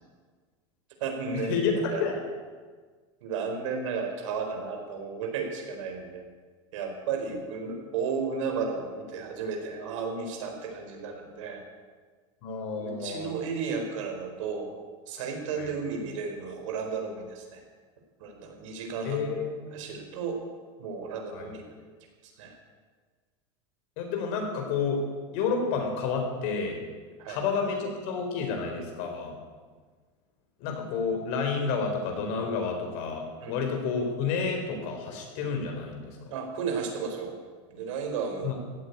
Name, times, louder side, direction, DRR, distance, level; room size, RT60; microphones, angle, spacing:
voice 1, 1.0-1.6 1.9-2.0 3.2-6.2 6.7-11.6 12.8-14.8 15.1-17.6 18.2-19.3 19.7-20.4 20.8-21.6 22.2-22.6 27.2-27.4 33.4-33.6 36.3-37.3 37.7-38.5, right 5 dB, 85° right, 2 dB, 4.5 m, -33 dB
voice 2, 12.4-13.3 15.6-15.7 19.0-19.6 21.3-21.5 24.0-25.0 25.3-26.8 27.3-29.3 30.6-36.3 38.4-38.5, left 5 dB, 55° left, 3 dB, 4.4 m, -30 dB
15.5 x 9.1 x 9.5 m, 1.5 s
supercardioid pair, 155°, 16 cm